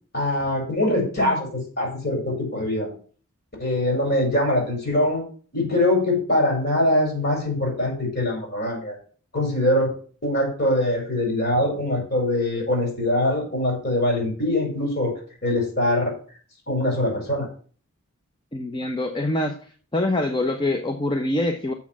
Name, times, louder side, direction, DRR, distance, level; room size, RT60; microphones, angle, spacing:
voice 1, 0.1-2.9 3.6-5.2 5.5-9.0 9.3-9.9 10.2-15.1 15.4-16.1 16.7-17.5, left 1 dB, 45° left, 0 dB, 5.3 m, -23 dB
voice 2, 18.5-19.5 19.9-21.7, left 1 dB, 20° left, 5 dB, 0.7 m, -24 dB
7.2 x 6.2 x 7.5 m, 0.42 s
head